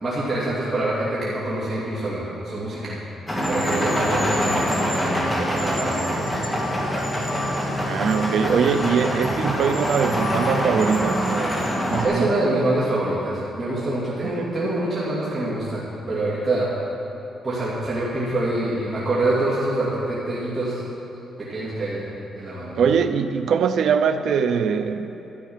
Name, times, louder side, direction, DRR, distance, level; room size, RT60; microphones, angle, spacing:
voice 1, 0.0-3.0 3.5-6.0 12.0-16.7 17.4-20.8 21.4-22.8, right 1 dB, 25° right, -8 dB, 2.4 m, -25 dB
sound 1, 3.3-12.1, equal, 5° left, 2.2 m, -24 dB
voice 2, 7.9-12.3 14.2-14.6 22.7-25.2, right 6 dB, 65° right, 10 dB, 0.5 m, -22 dB
12.5 x 12.0 x 5.7 m, 2.9 s
cardioid pair, 140°, 0 cm